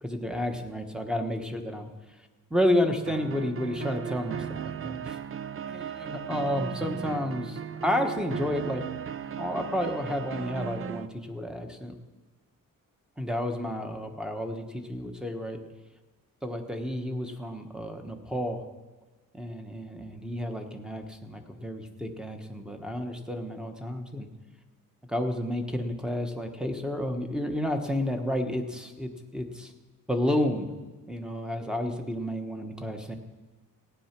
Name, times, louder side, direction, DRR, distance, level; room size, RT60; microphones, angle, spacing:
voice 1, 0.0-1.9 2.5-5.2 5.7-8.8 9.4-11.9 13.2-15.6 16.4-18.6 19.3-24.3 25.1-29.7 30.1-30.7 31.1-33.2, left 1 dB, ahead, 4 dB, 1.2 m, -31 dB
sound 1, 3.1-11.1, right 8 dB, 40° right, 0.5 m, -36 dB
16.0 x 9.4 x 6.0 m, 1.2 s
wide cardioid pair, 150°, 35 cm